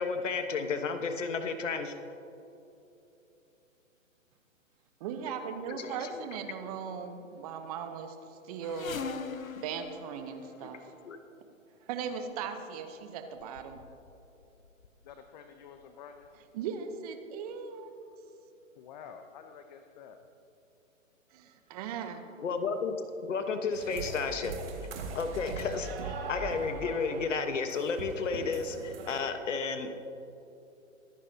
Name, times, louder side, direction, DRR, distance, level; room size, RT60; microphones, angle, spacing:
voice 1, 0.0-1.9 5.7-6.2 11.0-11.2 22.4-22.9 23.2-24.5 25.1-29.9, left 4 dB, 65° left, 8 dB, 1.3 m, -32 dB
voice 2, 5.0-8.2 8.4-9.0 9.6-10.8 11.8-13.8 16.5-18.0 21.3-22.2, right 6 dB, 30° right, 7 dB, 0.9 m, -38 dB
sound 1, 8.6-11.1 12.1-12.3 13.0-13.1 13.4-14.3 14.6-15.1 15.8-15.9 16.2-16.3, left 5 dB, 90° left, 0.8 m, -42 dB
voice 3, 15.0-16.3 18.7-20.2, left 7 dB, 35° left, 7 dB, 0.7 m, -49 dB
sound 2, 23.7-29.2, right 3 dB, 45° right, 1.9 m, -40 dB
24.0 x 9.8 x 2.8 m, 2.9 s
figure-of-eight pair, 130°, 40 cm